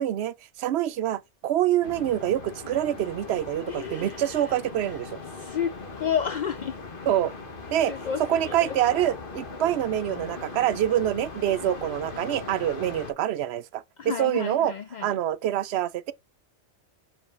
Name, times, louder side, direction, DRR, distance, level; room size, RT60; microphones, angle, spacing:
voice 1, 0.0-5.2 7.1-7.3 7.7-7.9 8.2-13.8 14.2-14.7 15.0-16.1, right 12 dB, 65° right, 0.7 m, -26 dB
sound 1, 1.8-13.1, left 3 dB, 45° left, 1.5 m, -39 dB
voice 2, 3.7-4.5 4.9-5.0 5.4-6.8 7.9-8.7 14.0-15.1, left 8 dB, 65° left, 0.4 m, -31 dB
4.8 x 3.8 x 5.3 m
omnidirectional pair, 1.3 m